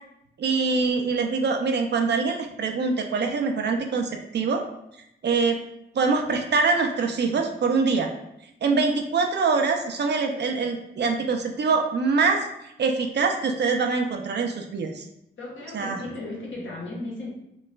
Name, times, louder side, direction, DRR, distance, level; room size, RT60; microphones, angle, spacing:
voice 1, 0.4-4.6 5.2-5.6 5.9-8.1 8.6-15.0 15.7-16.0, right 4 dB, 55° right, 4 dB, 0.5 m, -24 dB
voice 2, 15.4-17.3, left 2 dB, 70° left, -5 dB, 1.1 m, -35 dB
3.0 x 2.3 x 2.2 m, 0.80 s
supercardioid pair, 40°, 21 cm